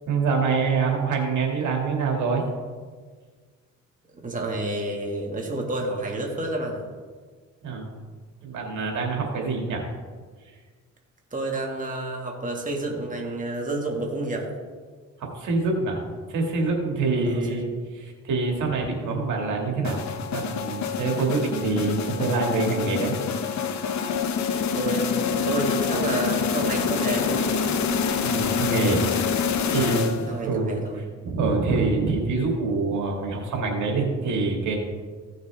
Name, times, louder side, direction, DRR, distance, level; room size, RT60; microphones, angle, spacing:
voice 1, 0.1-2.4 7.6-7.9 8.4-9.8 15.2-16.0 16.3-17.7 17.9-20.0 20.3-23.1 28.2-29.0 29.7-34.8, right 3 dB, 75° right, 0 dB, 2.1 m, -25 dB
voice 2, 4.2-6.8 11.3-14.5 17.0-17.6 24.7-25.1 25.4-27.6 29.8-31.0, right 2 dB, 25° right, 0 dB, 2.0 m, -30 dB
sound 1, 19.8-30.5, left 6 dB, 65° left, 1.0 m, -26 dB
16.0 x 6.5 x 3.5 m, 1.5 s
cardioid pair, 90°, 30 cm